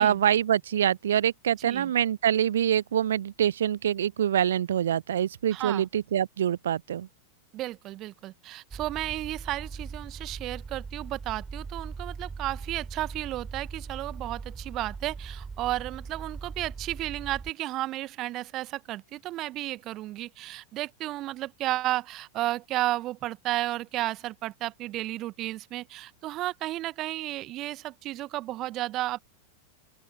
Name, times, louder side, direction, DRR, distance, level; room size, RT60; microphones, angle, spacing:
voice 1, 0.0-7.1, right 10 dB, 65° right, 0.5 m, -25 dB
voice 2, 1.6-1.9 5.5-5.9 7.5-29.2, right 16 dB, 35° right, 1.3 m, -33 dB
sound 1, 8.7-17.5, right 4 dB, 15° right, 7.2 m, -40 dB
open air
figure-of-eight pair, 90°, 0 cm